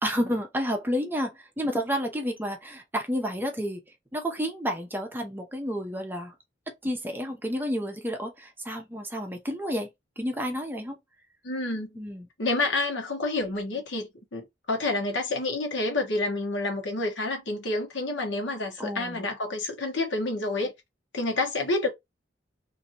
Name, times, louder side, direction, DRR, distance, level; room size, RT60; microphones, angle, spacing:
voice 1, 0.0-3.8 4.1-6.3 6.8-9.9 10.2-11.0 12.0-12.3 18.8-19.2, equal, 10° right, 0.6 m, -30 dB
voice 2, 11.4-12.0 12.4-20.7 21.1-21.9, left 2 dB, 80° left, 1.1 m, -29 dB
2.7 x 2.6 x 2.8 m
head